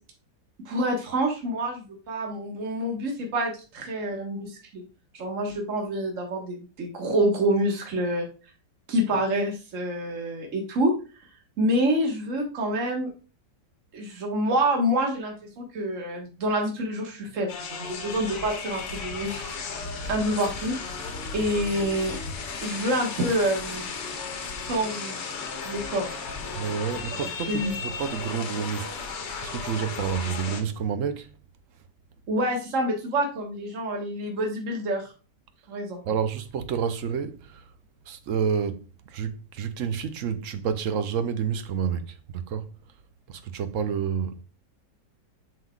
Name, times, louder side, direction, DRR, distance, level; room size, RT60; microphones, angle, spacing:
voice 1, 0.7-4.8 5.1-8.3 8.9-10.9 11.6-13.1 13.9-19.4 20.1-20.8 21.3-22.2 22.6-23.8 24.6-25.2 25.6-26.2 27.5-27.7 32.3-35.1 35.7-36.0, right 1 dB, 50° right, 1.7 m, -27 dB
sound 1, 17.5-30.6, left 5 dB, 90° left, 1.8 m, -35 dB
voice 2, 26.5-31.3 36.0-37.7 38.1-42.7 43.3-44.4, right 7 dB, 65° right, 0.8 m, -29 dB
7.4 x 5.7 x 2.3 m
omnidirectional pair, 1.8 m